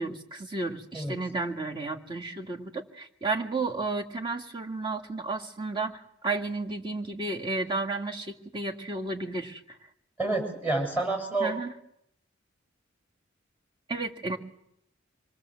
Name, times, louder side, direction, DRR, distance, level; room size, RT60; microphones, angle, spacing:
voice 1, 0.0-9.6 11.4-11.7 13.9-14.4, right 3 dB, 25° right, 3 dB, 2.1 m, -32 dB
voice 2, 10.2-11.5, right 2 dB, 10° right, 3 dB, 6.8 m, -28 dB
26.0 x 21.5 x 7.8 m, 0.75 s
head